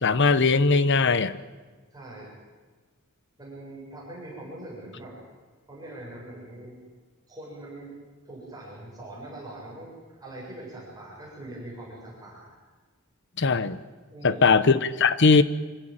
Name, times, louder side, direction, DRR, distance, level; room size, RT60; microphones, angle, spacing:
voice 1, 0.0-1.4 13.4-13.8 14.2-15.4, left 4 dB, 55° left, 14 dB, 1.0 m, -20 dB
voice 2, 1.9-2.4 3.4-5.2 5.7-6.8 7.3-7.9 8.2-12.6 14.1-14.6, right 1 dB, 15° right, -5 dB, 7.6 m, -42 dB
25.5 x 15.5 x 9.0 m, 1.4 s
head